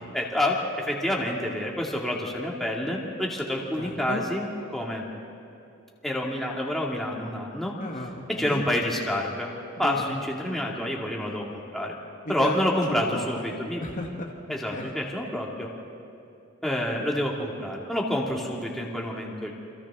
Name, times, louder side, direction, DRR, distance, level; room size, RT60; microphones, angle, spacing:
voice 1, 0.1-4.5 4.7-5.0 6.0-7.7 8.4-9.5 9.8-11.9 12.3-13.8 14.5-15.7 16.6-19.5, left 1 dB, ahead, -3 dB, 2.3 m, -28 dB
voice 2, 3.8-4.3 7.8-8.6 9.8-10.2 12.2-13.5 13.8-14.9, left 1 dB, 40° left, 0 dB, 1.4 m, -34 dB
28.5 x 26.0 x 3.7 m, 2.6 s
head